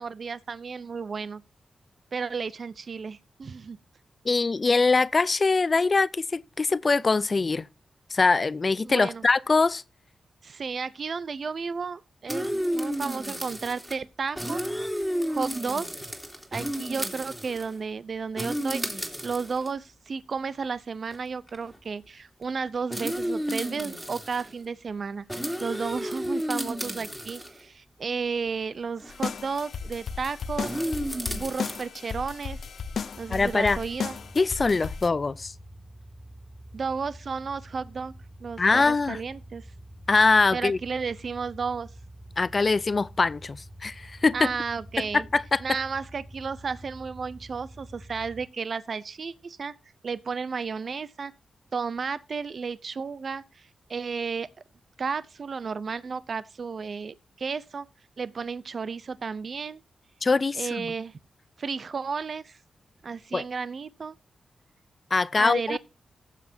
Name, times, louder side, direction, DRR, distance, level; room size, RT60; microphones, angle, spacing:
voice 1, 0.0-1.4 2.1-3.8 8.8-9.2 10.4-14.6 15.3-15.9 16.5-30.8 31.3-32.6 33.2-34.2 36.7-38.1 38.4-39.7 40.5-41.9 44.3-45.3 45.6-49.7 50.0-51.3 51.7-54.5 55.0-57.9 58.2-59.8 60.6-61.1 61.6-62.6 63.0-64.1 65.4-65.8, right 5 dB, 60° right, 0.6 m, -33 dB
voice 2, 4.3-7.7 8.1-9.8 33.3-33.8 34.4-35.5 38.6-39.2 40.1-40.8 42.4-44.5 45.1-45.6 60.2-60.9 63.3-63.4 65.1-65.8, left 4 dB, 40° left, 0.4 m, -23 dB
sound 1, 12.3-13.9 14.3-17.8 18.4-19.7 20.5-20.6 21.1-21.2 21.5-21.8 22.9-24.5 25.3-27.6 29.0-29.1 30.6-31.8, equal, 5° right, 2.9 m, -32 dB
sound 2, 29.1-35.1, left 6 dB, 75° left, 0.8 m, -35 dB
sound 3, 33.1-48.4, equal, 10° left, 2.2 m, -47 dB
17.5 x 7.5 x 2.7 m
cardioid pair, 65°, 0 cm